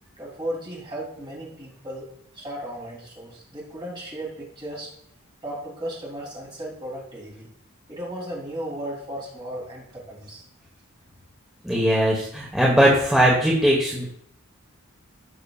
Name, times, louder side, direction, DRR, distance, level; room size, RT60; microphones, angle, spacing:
voice 1, 0.2-2.0 2.3-4.9 5.4-7.5 7.9-10.4, right 1 dB, 25° right, -5 dB, 3.2 m, -35 dB
voice 2, 11.6-14.0, equal, 5° right, -4 dB, 1.3 m, -19 dB
16.5 x 5.8 x 2.4 m, 0.69 s
head